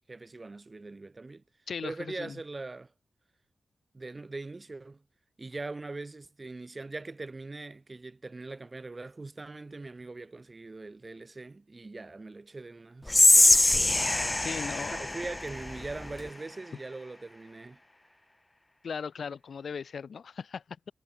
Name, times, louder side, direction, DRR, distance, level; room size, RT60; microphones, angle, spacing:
voice 1, 0.1-1.4 1.8-2.9 3.9-5.0 5.4-13.8 14.8-17.8, right 3 dB, 35° right, 5.6 m, -41 dB
voice 2, 1.7-2.4 14.4-15.1 18.8-20.9, left 6 dB, 75° left, 4.2 m, -38 dB
Whispering, 13.1-16.3, left 2 dB, 20° left, 0.7 m, -23 dB
cardioid pair, 80°, 0 cm